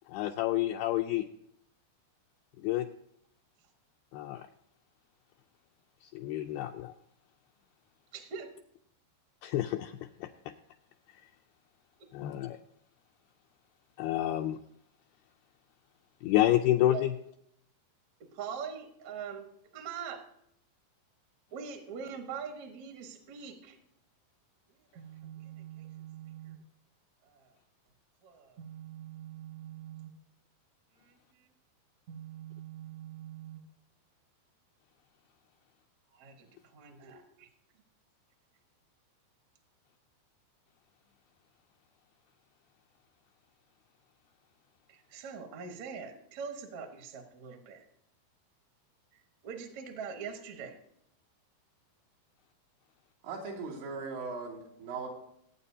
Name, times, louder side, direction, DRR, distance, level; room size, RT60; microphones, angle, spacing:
voice 1, 0.1-1.2 2.6-2.9 4.1-4.4 6.0-6.9 9.4-9.9 10.2-10.3 12.1-12.6 14.0-14.6 16.2-17.1, left 14 dB, 85° left, 4 dB, 2.2 m, -29 dB
voice 2, 8.1-8.5 12.0-12.1 16.9-17.1 18.3-19.5 19.7-20.2 21.5-23.8 24.9-26.6 27.2-27.5 28.2-30.1 31.0-31.2 32.1-33.6 36.1-37.5 44.9-47.8 49.1-50.8, right 7 dB, 65° right, 4 dB, 1.9 m, -43 dB
voice 3, 53.2-55.1, right 4 dB, 90° right, -3 dB, 5.0 m, -39 dB
22.0 x 8.9 x 2.8 m, 0.74 s
omnidirectional pair, 4.9 m